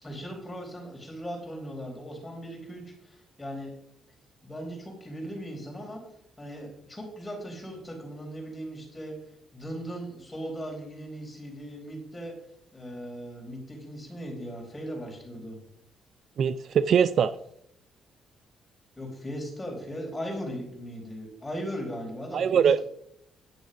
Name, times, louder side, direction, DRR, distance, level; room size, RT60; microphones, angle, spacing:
voice 1, 0.0-3.7 4.4-6.0 6.4-9.1 9.5-12.3 12.7-15.6 19.0-22.8, equal, 15° left, 4.6 m, -38 dB
voice 2, 16.4-17.3 22.3-22.8, right 7 dB, 60° right, 0.4 m, -22 dB
10.5 x 6.2 x 5.3 m
cardioid pair, 90°, 0 cm